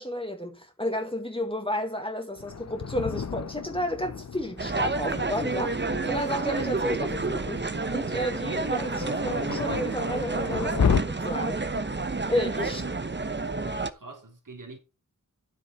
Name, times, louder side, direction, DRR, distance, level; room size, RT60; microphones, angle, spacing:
voice 1, 0.0-11.6 12.3-12.8, equal, 15° left, 1.9 m, -32 dB
Thunder, 2.4-11.0, left 6 dB, 55° left, 0.6 m, -33 dB
sound 1, 4.6-13.9, right 3 dB, 35° right, 0.9 m, -30 dB
voice 2, 12.6-13.3 13.6-14.8, right 3 dB, 70° right, 3.2 m, -45 dB
9.7 x 7.8 x 4.3 m
wide cardioid pair, 50°, 32 cm